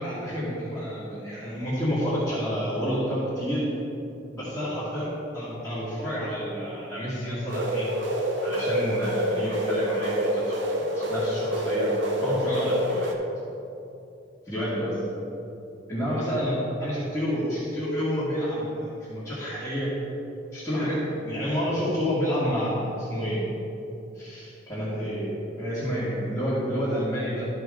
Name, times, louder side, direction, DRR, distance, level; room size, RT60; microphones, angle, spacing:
voice 1, 0.0-3.7 4.3-5.1 5.3-7.9 8.4-11.9 12.2-13.1 14.5-15.0 15.9-19.9 20.5-23.4 24.1-25.3 25.6-27.5, equal, 10° left, -14 dB, 2.1 m, -29 dB
sound 1, 7.5-13.1, equal, 75° right, 0.9 m, -27 dB
13.5 x 5.1 x 3.8 m, 2.8 s
head